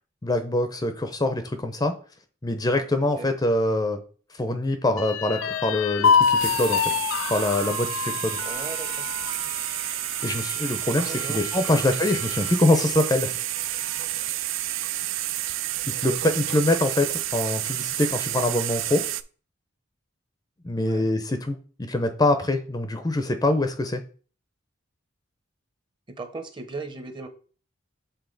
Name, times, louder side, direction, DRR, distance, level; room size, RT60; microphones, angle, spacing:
voice 1, 0.2-1.9 2.4-4.0 4.4-6.8 7.3-8.4 10.2-13.3 15.9-19.0 20.6-24.0, left 2 dB, 20° left, 8 dB, 0.5 m, -24 dB
voice 2, 3.0-3.3 8.4-9.1 11.1-12.0 20.8-21.0 26.2-27.3, right 3 dB, 25° right, 8 dB, 0.8 m, -38 dB
sound 1, 5.0-12.6 13.1-13.2 13.6-14.2, left 6 dB, 75° left, 0.4 m, -27 dB
sound 2, 6.0-19.2, right 14 dB, 75° right, 0.4 m, -30 dB
6.9 x 3.9 x 3.9 m, 0.40 s
head